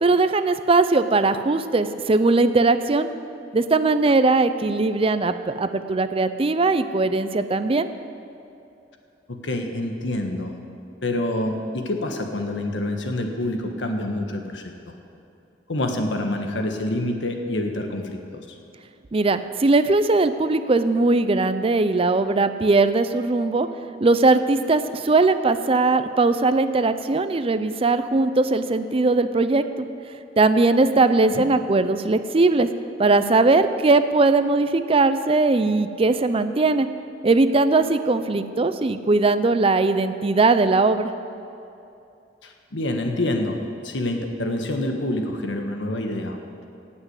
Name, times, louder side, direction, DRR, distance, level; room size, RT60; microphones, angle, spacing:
voice 1, 0.0-3.1 3.5-7.9 19.1-23.7 24.0-29.9 30.4-32.7 33.0-36.9 37.2-41.1, right 3 dB, 30° right, 11 dB, 0.5 m, -19 dB
voice 2, 9.3-10.5 11.0-14.6 15.7-18.6 31.2-31.5 42.4-43.6 43.8-46.4, left 1 dB, 90° left, 4 dB, 1.5 m, -27 dB
18.0 x 6.2 x 8.1 m, 2.7 s
head